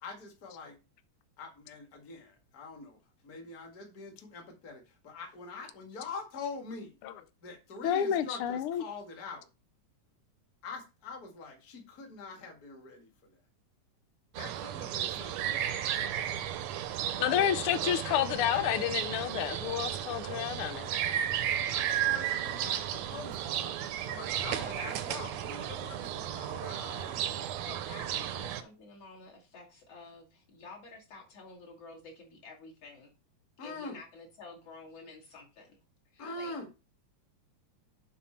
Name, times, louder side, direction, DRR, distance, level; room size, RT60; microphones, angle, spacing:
voice 1, 0.0-0.8 1.4-7.0 7.4-9.5 10.6-13.4 14.4-16.5 21.7-27.2 33.6-34.0 36.2-36.7, left 4 dB, 35° left, 2.0 m, -44 dB
voice 2, 7.8-8.8 17.2-20.9, left 10 dB, 85° left, 1.2 m, -30 dB
sound 1, 14.3-28.6, right 11 dB, 75° right, 1.9 m, -34 dB
voice 3, 17.8-19.6 24.5-25.0 27.6-33.1 33.6-35.8 36.1-36.5, left 3 dB, 55° left, 3.4 m, -49 dB
7.5 x 5.5 x 4.3 m
omnidirectional pair, 3.3 m